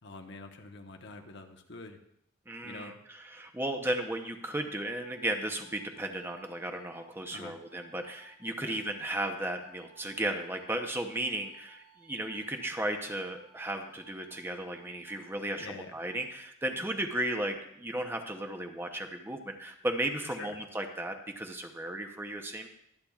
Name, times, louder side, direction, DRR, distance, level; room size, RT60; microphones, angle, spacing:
voice 1, 0.0-2.0 2.6-3.0 7.3-7.6 8.6-8.7 15.6-16.0 20.2-20.6, left 3 dB, 60° left, 4 dB, 1.0 m, -45 dB
voice 2, 2.5-22.7, right 1 dB, 10° right, 4 dB, 0.8 m, -35 dB
sound 1, 4.9-16.2, right 4 dB, 75° right, 4.5 m, -62 dB
23.0 x 8.6 x 2.4 m, 0.74 s
head